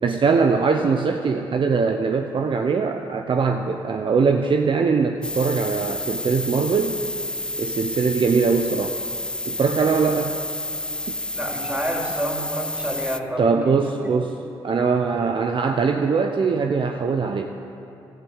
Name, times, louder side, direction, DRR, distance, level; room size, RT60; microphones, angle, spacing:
voice 1, 0.0-7.0 7.6-8.9 9.5-10.4 13.4-14.3 14.6-17.5, right 5 dB, 50° right, 5 dB, 0.8 m, -21 dB
sound 1, 5.2-13.2, left 1 dB, 10° left, 0.5 m, -30 dB
voice 2, 11.3-14.1, right 1 dB, 10° right, -1 dB, 3.2 m, -29 dB
12.0 x 10.5 x 8.1 m, 2.8 s
supercardioid pair, 50°, 11 cm